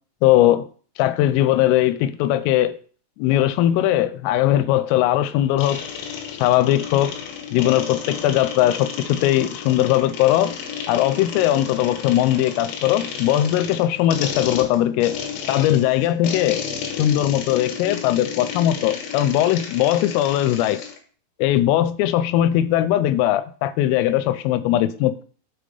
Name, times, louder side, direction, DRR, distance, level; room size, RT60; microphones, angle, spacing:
voice 1, 0.2-0.7 1.0-2.8 3.2-5.8 6.4-7.2 7.5-10.6 10.9-15.2 15.5-16.6 17.0-20.8 21.4-25.2, left 13 dB, 90° left, 3.2 m, -19 dB
sound 1, 5.6-21.0, left 7 dB, 70° left, 3.0 m, -32 dB
7.7 x 5.2 x 5.3 m
omnidirectional pair, 5.8 m